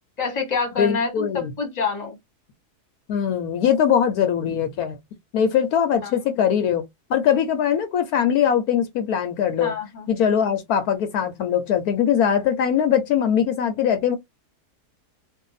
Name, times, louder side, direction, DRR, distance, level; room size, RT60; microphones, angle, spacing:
voice 1, 0.2-2.2 6.0-6.2 9.6-10.1, left 4 dB, 30° left, 1.1 m, -27 dB
voice 2, 0.8-1.5 3.1-5.0 5.3-6.8 7.1-9.8 10.1-14.2, left 8 dB, 75° left, 1.1 m, -21 dB
2.6 x 2.5 x 3.9 m
omnidirectional pair, 1.7 m